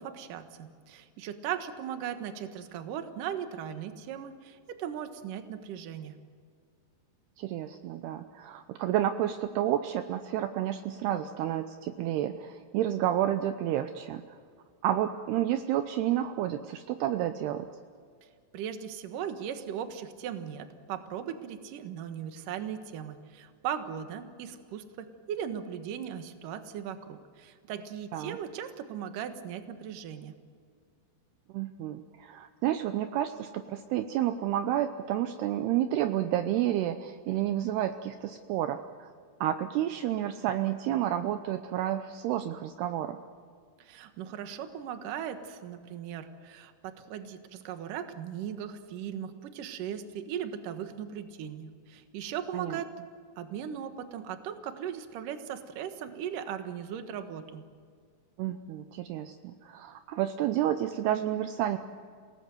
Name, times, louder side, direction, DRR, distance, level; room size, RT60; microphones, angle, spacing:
voice 1, 0.0-6.1 18.5-30.4 43.8-52.9 53.4-57.6, right 9 dB, 60° right, 8 dB, 2.6 m, -38 dB
voice 2, 7.4-14.4 14.8-17.7 28.1-28.4 31.5-39.1 39.4-43.2 52.5-52.8 58.4-61.8, right 12 dB, 75° right, 8 dB, 2.7 m, -30 dB
29.5 x 18.5 x 7.8 m, 2.1 s
omnidirectional pair, 5.0 m